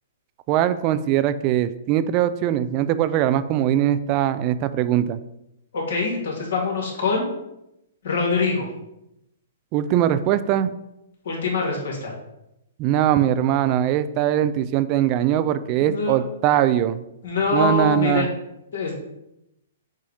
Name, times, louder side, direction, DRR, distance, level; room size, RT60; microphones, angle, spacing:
voice 1, 0.5-5.2 9.7-10.7 12.8-17.0 17.5-18.3, right 11 dB, 35° right, 13 dB, 0.4 m, -21 dB
voice 2, 5.7-7.3 8.0-8.7 11.2-12.1 15.8-16.2 17.2-18.3 18.7-18.9, left 4 dB, 70° left, -1 dB, 2.3 m, -24 dB
7.1 x 2.7 x 5.0 m, 0.85 s
hypercardioid pair, 135°, 0 cm